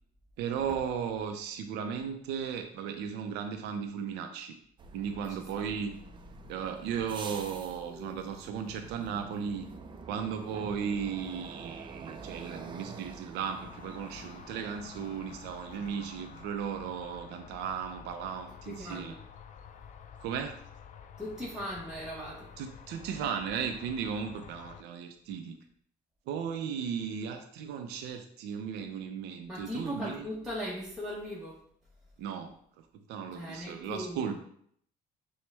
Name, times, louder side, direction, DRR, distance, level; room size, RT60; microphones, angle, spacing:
voice 1, 0.4-4.6 4.9-6.0 6.5-9.6 10.1-19.1 20.2-20.6 22.6-25.6 26.3-30.3 32.2-34.4, right 7 dB, 90° right, 6 dB, 0.5 m, -36 dB
sound 1, 4.8-16.5, right 4 dB, 30° right, 0.4 m, -47 dB
sound 2, 13.4-24.8, left 7 dB, 50° left, 0.4 m, -50 dB
voice 2, 18.7-19.2 21.2-22.5 29.5-31.6 33.3-34.3, equal, ahead, -6 dB, 0.8 m, -38 dB
6.0 x 2.1 x 3.3 m, 0.65 s
cardioid pair, 110°, 17 cm